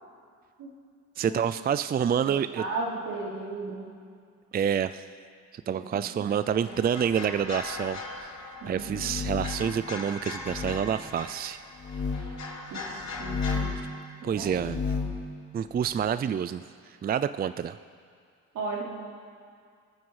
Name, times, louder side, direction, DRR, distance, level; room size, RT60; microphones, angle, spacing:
voice 1, 1.2-2.7 4.5-5.1 5.5-8.4 8.7-11.6 14.2-14.8 15.5-16.6 16.9-17.8, right 8 dB, 30° right, 13 dB, 0.4 m, -28 dB
voice 2, 2.2-3.9 5.7-6.2 6.6-6.8 8.6-9.1 12.7-13.7 14.2-14.5 18.5-18.8, right 3 dB, 80° right, -2 dB, 3.3 m, -36 dB
sound 1, 6.2-13.7, left 3 dB, 60° left, 3.2 m, -40 dB
sound 2, 8.7-9.7 10.4-10.8 11.8-12.2 13.1-13.8 14.5-15.2, left 5 dB, 35° left, 2.4 m, -32 dB
27.0 x 9.4 x 4.8 m, 2.2 s
cardioid pair, 90°, 30 cm